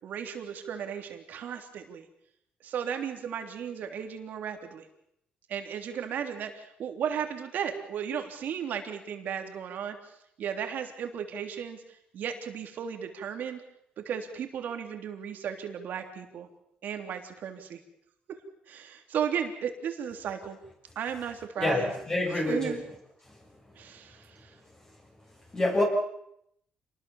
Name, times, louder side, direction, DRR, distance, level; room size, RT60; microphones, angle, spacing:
voice 1, 0.0-2.0 2.6-4.8 5.5-10.0 10.4-11.8 12.1-13.6 14.0-16.5 16.8-17.8 18.7-20.6 20.9-21.9 22.3-22.8 23.8-24.5, right 8 dB, 70° right, 5 dB, 3.4 m, -35 dB
voice 2, 21.6-22.8 25.5-25.8, left 2 dB, 20° left, -1 dB, 6.7 m, -27 dB
27.5 x 20.0 x 7.3 m, 0.75 s
cardioid pair, 120°, 3 cm